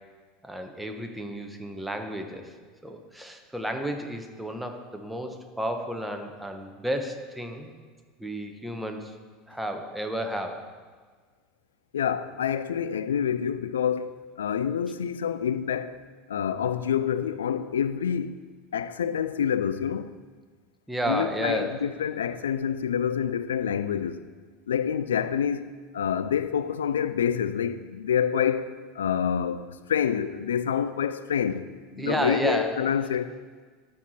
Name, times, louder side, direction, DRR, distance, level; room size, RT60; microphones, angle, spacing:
voice 1, 0.4-2.5 2.8-7.7 8.2-9.1 9.5-10.7 20.9-21.8 32.0-32.7, right 1 dB, 5° right, 1.1 m, -32 dB
voice 2, 11.9-16.0 16.3-18.4 18.7-20.1 21.1-24.2 24.7-28.7 28.9-29.6 29.9-31.7 31.9-33.4, left 8 dB, 80° left, 0.3 m, -27 dB
13.0 x 4.7 x 4.2 m
hypercardioid pair, 80°, 0 cm